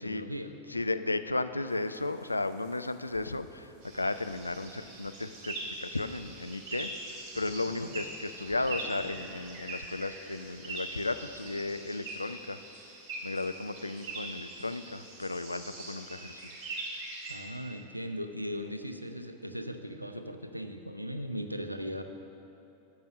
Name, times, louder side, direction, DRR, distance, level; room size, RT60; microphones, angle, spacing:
voice 1, 0.0-0.5 7.7-7.9 17.3-22.0, equal, 90° right, 7 dB, 0.6 m, -38 dB
voice 2, 0.7-12.6 13.2-16.5, left 2 dB, 85° left, 11 dB, 0.3 m, -34 dB
sound 1, 1.7-11.7, left 2 dB, 35° left, 1.8 m, -58 dB
sound 2, 3.8-17.3, right 2 dB, 35° right, 2.6 m, -42 dB
9.4 x 7.0 x 6.3 m, 2.9 s
figure-of-eight pair, 90°, 0 cm